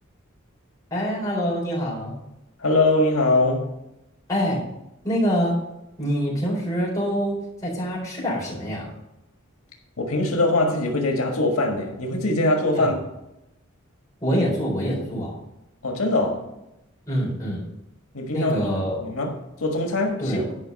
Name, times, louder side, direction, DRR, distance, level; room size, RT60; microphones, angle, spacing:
voice 1, 0.9-2.2 4.3-4.6 5.0-5.6 6.0-8.9 12.8-12.9 14.2-15.4 17.1-17.6 18.3-19.0 20.2-20.5, equal, 15° left, 4.0 m, -25 dB
voice 2, 2.6-3.7 10.0-13.0 15.8-16.5 18.1-18.5 18.8-20.4, left 2 dB, 90° left, 1.6 m, -22 dB
10.5 x 5.5 x 5.3 m
head